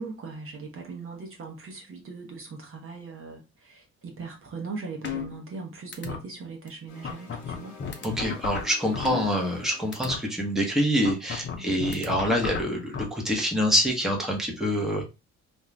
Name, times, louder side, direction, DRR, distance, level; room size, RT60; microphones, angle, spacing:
voice 1, 0.0-7.8 9.1-9.2 11.5-11.8, right 4 dB, 45° right, 0.8 m, -39 dB
sound 1, 5.0-5.6 5.9-6.2 6.7-6.8 7.0-9.6 9.9-10.2 11.0-13.0, left 6 dB, 40° left, 0.7 m, -33 dB
sound 2, 6.9-11.2, left 2 dB, 75° left, 1.0 m, -49 dB
voice 2, 8.0-15.1, equal, ahead, 0.9 m, -26 dB
2.5 x 2.3 x 3.1 m
cardioid pair, 90°, 30 cm